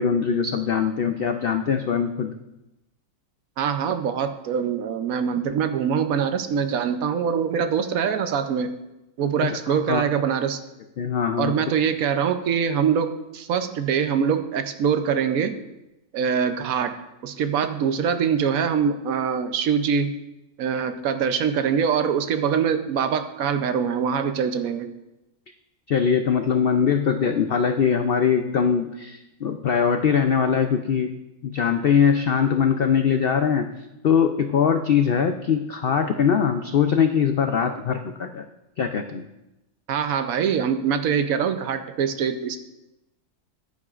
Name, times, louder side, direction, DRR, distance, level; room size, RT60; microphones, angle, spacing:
voice 1, 0.0-2.4 9.4-10.0 11.0-11.5 25.9-31.1 31.4-33.7 34.0-38.4 38.8-39.3, left 7 dB, 75° left, 6 dB, 0.5 m, -22 dB
voice 2, 3.6-8.7 9.2-10.6 11.4-15.6 16.1-16.9 17.2-20.1 20.6-24.9 39.9-42.6, right 7 dB, 70° right, 9 dB, 1.1 m, -23 dB
14.0 x 11.0 x 2.4 m, 0.97 s
omnidirectional pair, 1.6 m